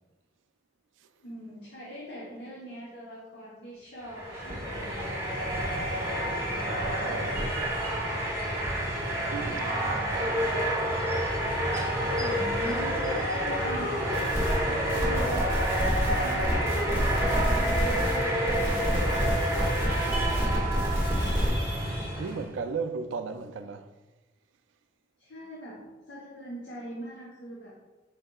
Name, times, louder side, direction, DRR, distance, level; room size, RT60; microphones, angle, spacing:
voice 1, 1.2-5.2 9.5-10.6 12.2-14.0 14.6-15.5 16.1-19.5 20.1-21.4 25.2-27.7, right 1 dB, 65° left, 0.9 m, -43 dB
sound 1, 4.0-22.5, right 1 dB, 15° right, 1.0 m, -29 dB
voice 2, 6.6-7.6 9.3-10.3 22.2-23.9, right 5 dB, 85° right, 0.3 m, -36 dB
sound 2, 14.1-14.6 14.9-18.2 18.4-21.5, equal, 15° left, 1.3 m, -28 dB
4.7 x 4.3 x 2.3 m
head